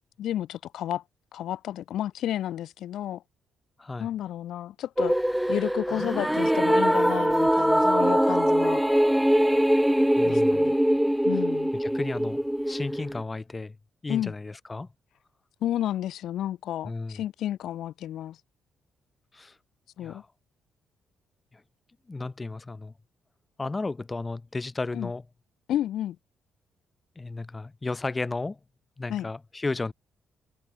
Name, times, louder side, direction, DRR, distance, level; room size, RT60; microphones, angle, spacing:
voice 1, 0.2-1.0 1.3-3.2 4.0-5.2 5.5-8.8 10.2-10.8 11.2-11.7 14.1-14.3 15.6-18.4 20.0-20.2 24.9-25.1 25.7-26.2 29.1-29.3, left 12 dB, 75° left, 2.9 m, -31 dB
sound 1, 5.0-13.2, equal, 5° right, 1.1 m, -23 dB
voice 2, 10.2-10.7 11.3-11.4 11.7-13.8 14.0-14.9 16.8-17.2 19.3-19.6 20.0-20.3 21.5-21.6 22.1-22.9 23.6-25.2 27.1-28.6 29.0-29.9, left 3 dB, 20° left, 5.0 m, -34 dB
cardioid pair, 90°, 0 cm